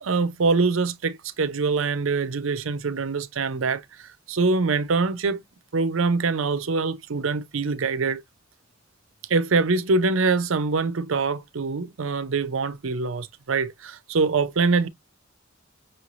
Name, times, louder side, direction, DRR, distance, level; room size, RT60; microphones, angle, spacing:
voice 1, 0.0-3.8 4.3-5.4 5.7-8.2 9.3-14.9, right 4 dB, 70° right, 0.6 m, -24 dB
6.2 x 3.1 x 2.5 m
head